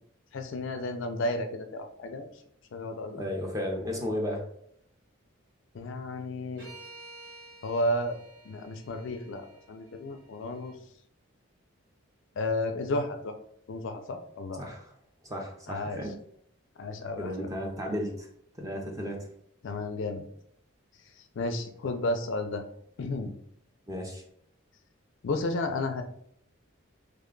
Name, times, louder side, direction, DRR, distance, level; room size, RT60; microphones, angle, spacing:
voice 1, 0.3-2.3 2.7-3.2 5.7-6.7 7.6-8.2 8.4-10.7 12.4-13.3 13.7-14.6 15.7-16.0 16.8-17.5 19.6-20.3 21.4-22.6 23.0-23.3 25.2-26.0, left 2 dB, 55° left, 7 dB, 0.4 m, -32 dB
voice 2, 3.1-4.4 14.5-14.9 15.2-16.1 17.2-18.3 18.5-19.3 23.9-24.2, equal, 15° right, 1 dB, 0.5 m, -34 dB
sound 1, 6.6-10.8, right 2 dB, 55° right, 1.2 m, -51 dB
3.3 x 2.2 x 3.7 m, 0.69 s
head